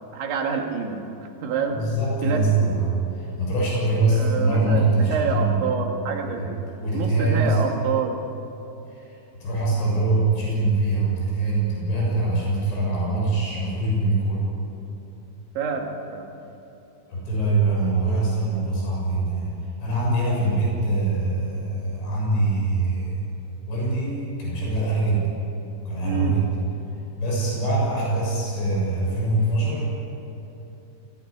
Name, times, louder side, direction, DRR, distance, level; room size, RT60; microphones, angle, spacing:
voice 1, 0.1-1.1 1.4-1.8 2.2-2.7 4.1-6.6 6.9-8.2 15.6-16.3 26.0-26.4, right 5 dB, 80° right, 2 dB, 4.4 m, -27 dB
voice 2, 1.7-5.7 6.2-6.5 6.8-7.8 8.9-14.4 17.1-23.2 23.7-25.3 25.9-26.5 27.2-29.9, right 2 dB, 90° left, -4 dB, 9.3 m, -23 dB
23.0 x 18.0 x 10.0 m, 2.9 s
omnidirectional pair, 5.2 m